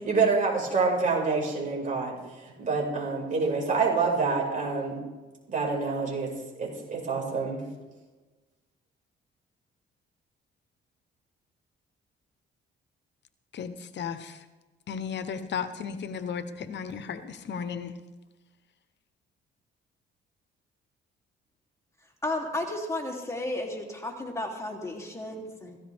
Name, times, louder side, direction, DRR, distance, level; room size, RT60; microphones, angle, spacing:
voice 1, 0.0-5.0 5.5-6.3 6.6-7.6, right 4 dB, 40° right, -2 dB, 5.4 m, -27 dB
voice 2, 13.5-14.4 14.9-18.0, left 7 dB, 60° left, 10 dB, 1.0 m, -35 dB
voice 3, 22.2-25.8, left 1 dB, 15° left, 0 dB, 3.1 m, -33 dB
16.5 x 16.0 x 3.6 m, 1.2 s
cardioid pair, 90°, 20 cm